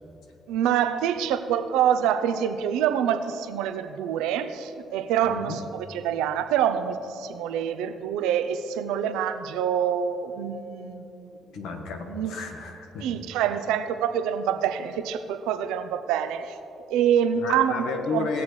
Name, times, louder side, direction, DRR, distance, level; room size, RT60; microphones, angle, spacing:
voice 1, 0.5-11.6 12.1-12.4 13.0-16.6 16.9-18.3, right 9 dB, 90° right, 9 dB, 0.6 m, -26 dB
voice 2, 5.2-5.6 11.5-13.2 17.4-18.4, left 4 dB, 85° left, 4 dB, 1.2 m, -32 dB
18.5 x 7.0 x 3.2 m, 2.9 s
supercardioid pair, 60°, 0 cm